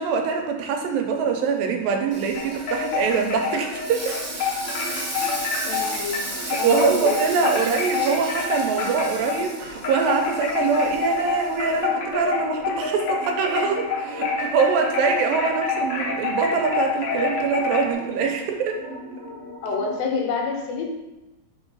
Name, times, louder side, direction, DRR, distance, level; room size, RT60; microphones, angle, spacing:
voice 1, 0.0-4.2 6.5-18.8, right 5 dB, 85° right, 4 dB, 2.4 m, -24 dB
sound 1, 1.3-20.0, right 1 dB, 45° right, 2.5 m, -40 dB
Frying (food), 2.1-11.8, right 2 dB, 65° right, 0.9 m, -35 dB
sound 2, 2.3-9.5 9.8-17.9, left 5 dB, 60° left, 1.8 m, -27 dB
voice 2, 5.7-6.2 6.6-7.1 7.4-7.5 19.6-21.0, left 4 dB, 80° left, 1 dB, 2.7 m, -27 dB
5.5 x 3.5 x 5.4 m, 1.0 s
omnidirectional pair, 4.0 m